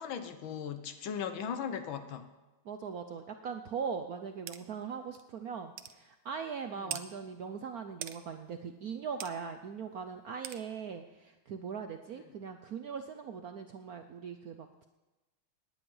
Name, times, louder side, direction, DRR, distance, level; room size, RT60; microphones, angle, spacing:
voice 1, 0.0-2.3 6.8-7.1, left 7 dB, 70° left, 9 dB, 1.7 m, -38 dB
voice 2, 2.6-14.9, right 6 dB, 65° right, 7 dB, 0.9 m, -40 dB
sound 1, 4.5-4.6 5.2-5.3 5.8-6.0 6.9-7.1 8.0-8.2 9.2-9.3 10.4-10.6, right 11 dB, 90° right, 1.7 m, -40 dB
18.5 x 9.9 x 5.4 m, 1.1 s
omnidirectional pair, 2.3 m